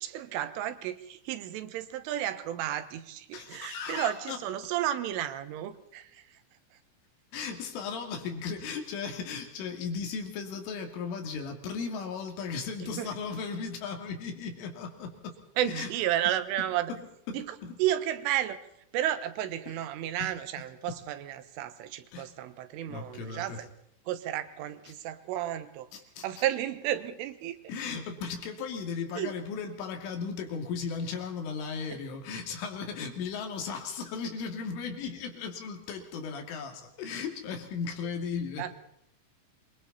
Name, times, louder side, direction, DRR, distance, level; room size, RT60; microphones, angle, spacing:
voice 1, 0.0-6.4 12.8-13.1 15.6-16.9 17.3-18.6 18.9-23.7 24.1-25.9 26.2-27.6 29.2-29.3 31.9-32.0 38.6-38.7, right 12 dB, 85° right, 11 dB, 3.8 m, -32 dB
voice 2, 3.3-4.4 7.3-15.4 15.7-15.9 16.9-17.0 17.3-17.8 20.2-20.3 20.9-21.0 22.1-22.3 22.9-23.6 24.9-25.0 25.9-26.3 27.7-38.8, left 5 dB, 80° left, 4 dB, 5.1 m, -36 dB
27.0 x 23.5 x 4.2 m, 0.77 s
omnidirectional pair, 5.6 m